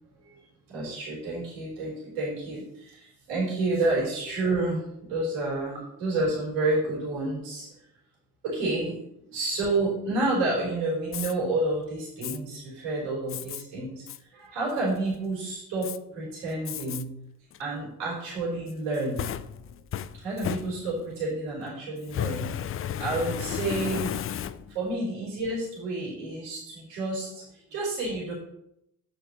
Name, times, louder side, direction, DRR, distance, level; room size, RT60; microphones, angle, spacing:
voice 1, 0.2-7.7 8.4-14.1 14.3-17.1 17.6-19.3 20.1-22.5 23.0-28.3, right 2 dB, 70° right, -5 dB, 3.8 m, -30 dB
Fire, 11.1-11.3 12.2-12.4 13.3-13.6 14.1-14.2 14.7-15.2 15.8-16.0 16.7-17.0 17.5-17.6 18.7-21.2 22.0-24.9, left 10 dB, 30° left, 0.5 m, -34 dB
9.2 x 8.3 x 3.0 m, 0.80 s
figure-of-eight pair, 45°, 42 cm